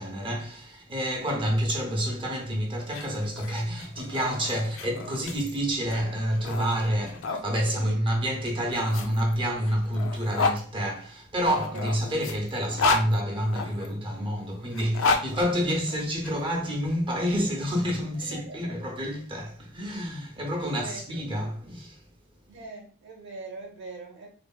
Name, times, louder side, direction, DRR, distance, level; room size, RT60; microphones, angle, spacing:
voice 1, 0.0-22.0, equal, 25° right, 0.6 m, -28 dB
sound 1, 2.8-7.4 8.4-10.6 11.5-13.9 14.7-16.3, left 3 dB, 65° left, 0.3 m, -31 dB
voice 2, 7.6-8.0 11.7-12.1 15.9-16.0 18.1-18.8 20.6-21.2 22.5-24.3, right 3 dB, 55° right, 0.8 m, -42 dB
3.3 x 2.1 x 2.3 m
head